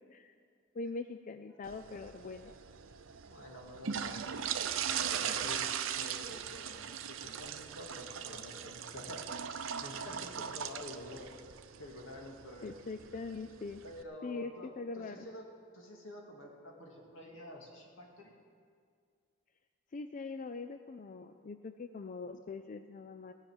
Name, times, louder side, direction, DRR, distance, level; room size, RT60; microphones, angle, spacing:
voice 1, 0.7-2.5 12.6-13.8 14.2-15.3 19.9-23.3, left 3 dB, 40° left, 8 dB, 0.4 m, -42 dB
sound 1, 1.6-14.0, right 8 dB, 85° right, 0.7 m, -39 dB
voice 2, 3.2-4.3 4.7-5.7 6.0-9.2 9.8-11.3 11.8-12.7 13.8-15.4 15.7-18.3, left 1 dB, 85° left, 0 dB, 2.5 m, -48 dB
17.0 x 5.7 x 9.0 m, 2.1 s
head